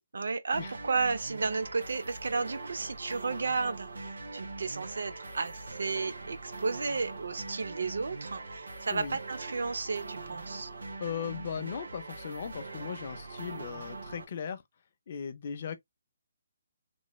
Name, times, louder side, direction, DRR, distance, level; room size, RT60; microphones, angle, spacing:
voice 1, 0.1-10.7, right 4 dB, 70° right, 0.6 m, -33 dB
sound 1, 0.5-14.2, right 3 dB, 90° right, 1.2 m, -42 dB
voice 2, 11.0-14.6 15.1-15.8, left 7 dB, 30° left, 0.4 m, -38 dB
3.1 x 2.2 x 3.0 m
hypercardioid pair, 175°, 0 cm